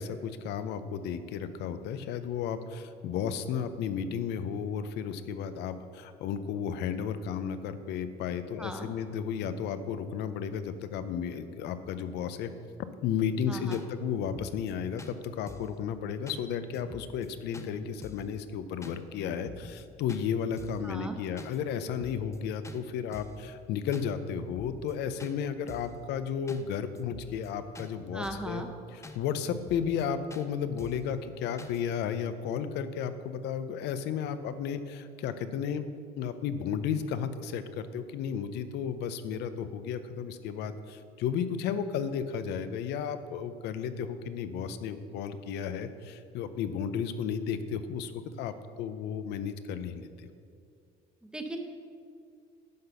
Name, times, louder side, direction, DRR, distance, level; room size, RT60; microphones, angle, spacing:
voice 1, 0.0-12.5 13.0-28.6 28.9-35.9 36.2-50.3, left 7 dB, 80° left, 11 dB, 0.6 m, -33 dB
sound 1, 13.2-13.3 13.7-13.9 14.2-14.7 15.0-15.1 15.5-15.8 16.3-16.4 16.7-17.3 17.5-17.7 18.0-18.3 18.8-19.0 19.3-19.8 20.1-20.2 20.6-20.9 21.4-21.6 21.8-22.4 22.6-22.8 23.1-23.4 23.9-24.1 24.4-24.9 25.2-25.3 25.7-26.0 26.5-26.6 27.0-27.5 27.8-27.9 28.2-28.5 29.0-29.2 29.5-30.0 30.3-30.5 30.8-31.1 31.6-31.8, left 4 dB, 15° left, 0.5 m, -47 dB
voice 2, 13.5-13.8 20.8-21.2 28.1-28.7 51.2-51.6, right 1 dB, 5° right, 4 dB, 0.9 m, -38 dB
10.5 x 4.0 x 6.7 m, 2.3 s
cardioid pair, 110°, 17 cm